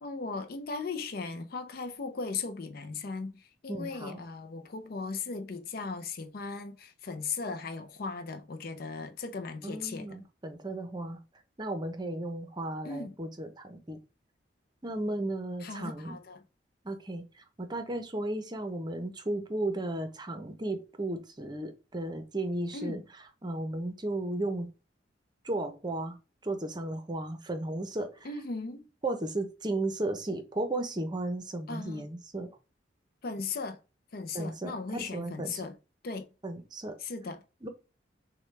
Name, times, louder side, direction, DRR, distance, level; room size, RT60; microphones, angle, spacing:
voice 1, 0.0-10.1 12.8-13.2 15.6-16.4 22.7-23.0 28.2-28.9 31.7-32.1 33.2-33.8 34.1-35.8 36.0-36.3 37.0-37.4, left 4 dB, 55° left, 0.5 m, -37 dB
voice 2, 3.7-4.2 9.6-11.2 11.6-14.0 14.8-16.2 16.8-23.0 23.4-24.7 25.4-26.2 26.4-28.3 29.0-32.5 34.3-35.6 36.4-37.0 37.6-37.7, right 2 dB, 25° right, 0.7 m, -34 dB
6.3 x 2.2 x 3.2 m
head